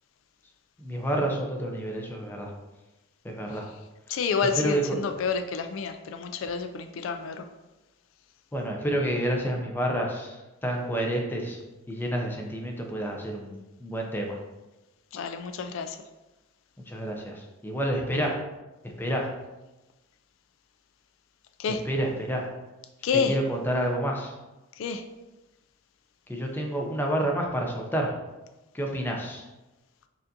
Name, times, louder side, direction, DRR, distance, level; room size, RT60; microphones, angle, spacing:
voice 1, 0.8-2.5 3.2-3.7 4.6-5.0 8.5-11.6 11.9-14.4 16.9-18.3 19.0-19.3 21.7-22.5 23.1-24.3 26.3-28.1 28.7-29.4, right 1 dB, 10° left, 0 dB, 0.5 m, -29 dB
voice 2, 4.1-7.4 15.1-16.0 21.6-21.8 23.0-23.4 24.8-25.0, left 5 dB, 70° left, 7 dB, 0.3 m, -29 dB
6.6 x 2.5 x 2.6 m, 1.1 s
head